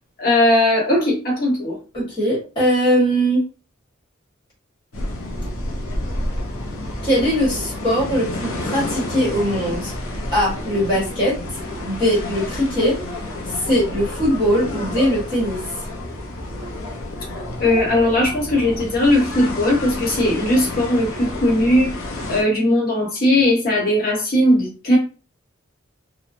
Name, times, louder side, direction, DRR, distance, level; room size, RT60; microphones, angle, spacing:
voice 1, 0.2-1.8 17.6-21.9 22.3-25.0, left 1 dB, 45° left, -1 dB, 1.1 m, -18 dB
voice 2, 1.9-3.4 7.0-9.9 10.3-11.3 11.8-13.0 13.5-15.6, equal, 25° left, -6 dB, 1.4 m, -20 dB
sound 1, 4.9-22.4, left 1 dB, 90° left, 0.8 m, -30 dB
3.0 x 2.2 x 2.5 m, 0.34 s
head